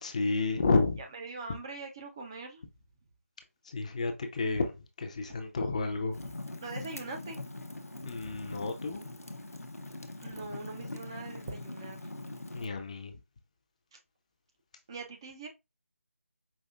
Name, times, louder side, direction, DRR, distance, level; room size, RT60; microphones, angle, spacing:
voice 1, 0.0-1.0 3.7-6.2 8.1-9.0 12.5-13.1, left 3 dB, 25° left, 0.6 m, -31 dB
voice 2, 1.1-2.6 6.2-6.3 6.6-7.4 10.2-12.0 13.9-14.0 14.9-15.5, right 3 dB, 20° right, 0.5 m, -42 dB
Fire, 6.1-12.7, left 2 dB, 90° left, 0.8 m, -42 dB
5.1 x 2.7 x 2.4 m
figure-of-eight pair, 160°, 8 cm